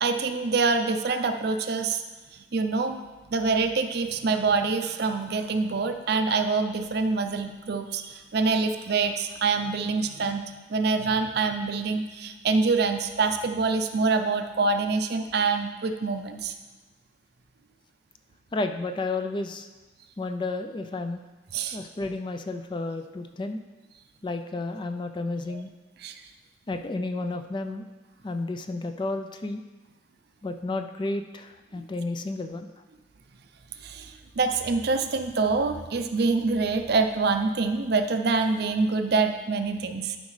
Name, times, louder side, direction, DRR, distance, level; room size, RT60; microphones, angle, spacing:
voice 1, 0.0-2.0 2.3-3.0 3.3-10.4 10.7-16.5 21.5-21.8 25.5-25.6 26.0-26.2 33.8-40.2, right 4 dB, 55° right, 7 dB, 0.5 m, -25 dB
voice 2, 18.5-19.7 20.2-21.2 21.7-23.6 24.2-25.7 26.7-27.9 28.2-29.6 30.4-32.7, left 2 dB, 25° left, 7 dB, 0.3 m, -32 dB
12.0 x 5.2 x 3.2 m, 1.2 s
head